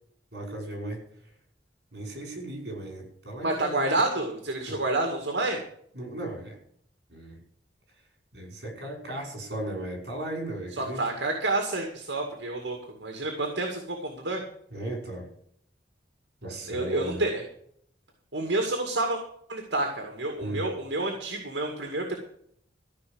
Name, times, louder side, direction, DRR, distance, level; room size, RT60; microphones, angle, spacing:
voice 1, 0.3-1.0 1.9-4.0 4.6-4.8 5.9-6.6 7.1-7.4 8.3-11.0 14.7-15.3 16.4-17.3 20.4-20.7, right 1 dB, 65° right, 2 dB, 5.3 m, -36 dB
voice 2, 3.4-5.6 10.8-14.4 16.7-17.4 18.3-19.2 19.5-22.2, right 2 dB, 80° right, 3 dB, 2.2 m, -29 dB
14.5 x 5.8 x 9.4 m, 0.66 s
head